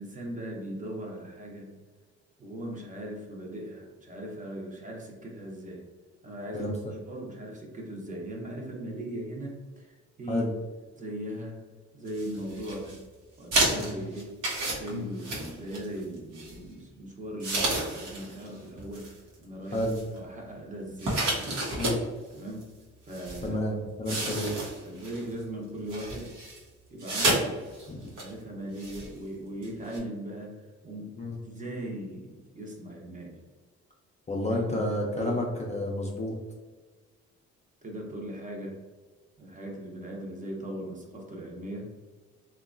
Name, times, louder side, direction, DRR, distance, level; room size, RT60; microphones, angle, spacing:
voice 1, 0.0-1.7 2.4-5.8 6.2-10.5 11.0-11.6 11.9-13.0 13.4-14.4 14.7-19.1 19.4-19.8 20.1-21.3 22.3-22.7 23.1-23.6 24.1-24.4 24.8-26.3 26.9-27.6 28.2-31.1 31.4-33.4 34.5-34.9 35.1-35.4 37.8-38.8 39.4-41.9, right 1 dB, 25° right, -1 dB, 0.6 m, -39 dB
sound 1, 12.1-13.0 13.5-16.0 16.3-16.6 17.4-18.5 18.8-19.1 19.7-20.2 21.0-22.0 22.6-22.7 23.1-23.5 24.0-25.2 25.9-26.6 27.0-27.4 27.7-27.9 28.2-28.3 28.8-29.1 29.6-29.7 29.9-30.0, right 1 dB, 85° right, 0.8 m, -30 dB
voice 2, 23.4-24.5 27.9-28.1 31.2-31.4 34.3-36.3, left 1 dB, 25° left, -2 dB, 0.4 m, -30 dB
2.9 x 2.2 x 2.4 m, 1.3 s
cardioid pair, 90°, 30 cm